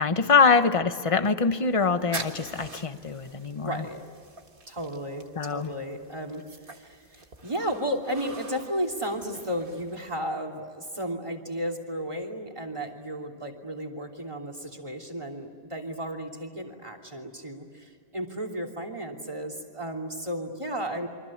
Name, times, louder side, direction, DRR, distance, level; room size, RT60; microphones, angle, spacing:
voice 1, 0.0-3.8 5.4-5.7, left 5 dB, 30° left, 10 dB, 1.1 m, -24 dB
sound 1, 1.6-10.3, right 3 dB, 55° right, 1.8 m, -45 dB
voice 2, 3.6-4.0 4.7-21.1, equal, 30° right, 5 dB, 3.1 m, -34 dB
28.0 x 24.5 x 8.7 m, 2.3 s
omnidirectional pair, 1.1 m